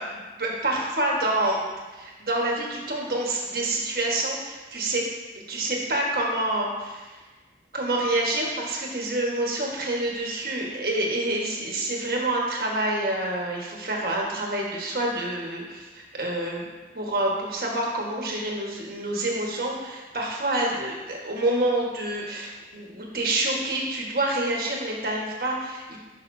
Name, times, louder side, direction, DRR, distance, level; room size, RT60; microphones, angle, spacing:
voice 1, 0.0-1.6 1.9-5.0 5.5-7.2 7.7-16.6 16.9-26.0, right 1 dB, 55° right, -2 dB, 1.5 m, -27 dB
11.0 x 5.7 x 2.7 m, 1.2 s
head